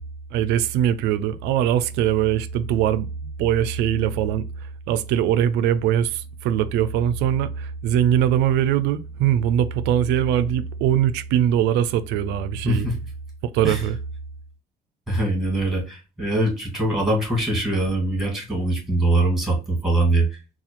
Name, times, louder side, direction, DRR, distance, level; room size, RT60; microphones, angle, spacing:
voice 1, 0.3-3.1 3.4-4.4 4.9-12.9 13.5-14.0, right 10 dB, 90° right, 0.4 m, -21 dB
voice 2, 12.6-13.0 13.6-13.9 15.1-20.4, right 2 dB, ahead, 1.7 m, -22 dB
4.0 x 2.3 x 2.9 m
cardioid pair, 110°, 17 cm